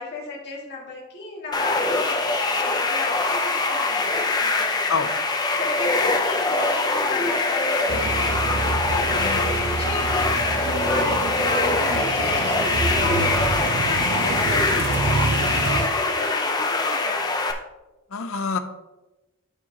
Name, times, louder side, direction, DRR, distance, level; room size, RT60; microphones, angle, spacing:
voice 1, 0.0-2.2 2.5-4.9 5.6-12.6 13.0-17.3, left 2 dB, 50° left, -4 dB, 2.6 m, -34 dB
sound 1, 1.5-17.5, left 3 dB, 20° left, 0.7 m, -23 dB
sound 2, 7.9-15.9, right 3 dB, 55° right, 0.5 m, -28 dB
voice 2, 18.1-18.6, left 4 dB, 65° left, 9 dB, 0.7 m, -26 dB
13.5 x 4.8 x 3.0 m, 1.1 s
head